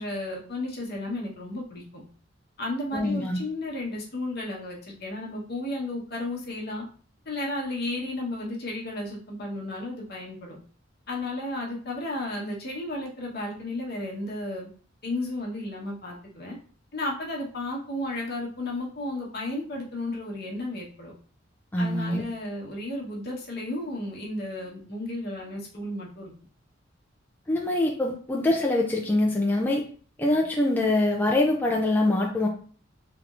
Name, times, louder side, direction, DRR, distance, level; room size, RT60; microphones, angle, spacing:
voice 1, 0.0-1.8 2.6-6.8 7.2-10.6 11.1-14.7 15.0-16.6 16.9-21.1 21.8-26.3, left 1 dB, 55° left, -2 dB, 1.0 m, -33 dB
voice 2, 2.9-3.4 21.7-22.2 27.5-29.8 30.2-32.5, left 1 dB, 10° left, -2 dB, 0.4 m, -24 dB
3.3 x 2.9 x 2.4 m, 0.43 s
head